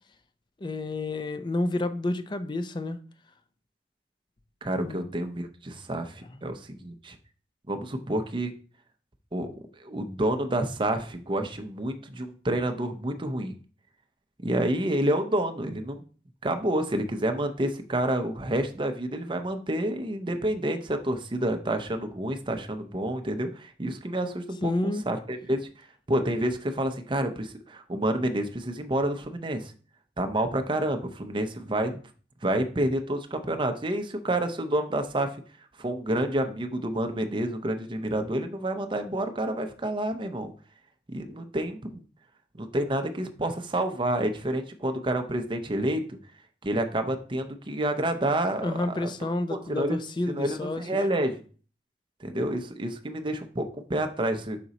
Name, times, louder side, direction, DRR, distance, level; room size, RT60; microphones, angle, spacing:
voice 1, 0.6-3.0 4.8-5.1 24.6-25.1 48.6-51.0, left 2 dB, 25° left, 0.4 m, -30 dB
voice 2, 4.6-7.2 7.7-8.5 9.3-9.5 9.8-13.5 14.4-16.0 16.4-25.7 26.1-29.7 30.2-32.0 32.4-35.4 35.8-40.5 41.1-42.0 42.5-46.0 46.6-51.4 52.2-54.6, right 1 dB, 25° right, 0.6 m, -29 dB
5.9 x 3.9 x 4.1 m
head